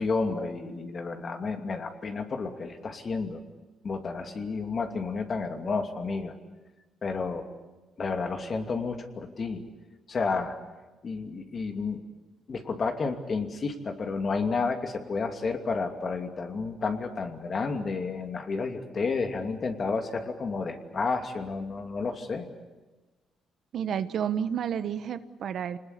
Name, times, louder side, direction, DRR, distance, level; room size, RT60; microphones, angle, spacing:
voice 1, 0.0-3.4 3.8-6.3 7.0-7.5 8.0-9.6 10.1-10.5 11.0-12.0 12.5-22.4, left 4 dB, 45° left, 5 dB, 2.7 m, -31 dB
voice 2, 23.7-25.8, right 8 dB, 65° right, 12 dB, 1.1 m, -30 dB
26.5 x 20.0 x 8.4 m, 1.2 s
cardioid pair, 90°, 0 cm